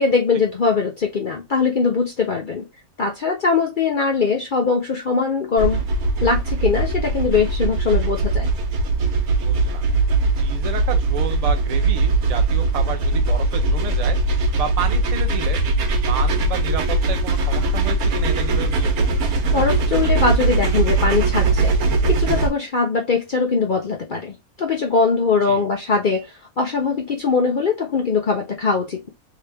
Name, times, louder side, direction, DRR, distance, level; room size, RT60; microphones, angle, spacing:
voice 1, 0.0-2.6 3.0-5.8 6.2-8.5 19.5-29.1, left 4 dB, 55° left, 0.5 m, -21 dB
sound 1, 5.6-22.5, right 3 dB, 80° right, 1.3 m, -20 dB
voice 2, 9.4-9.8 10.4-14.2 14.6-15.6 16.0-19.1 25.5-25.6, right 6 dB, 65° right, 0.3 m, -30 dB
3.1 x 2.8 x 3.3 m
omnidirectional pair, 1.5 m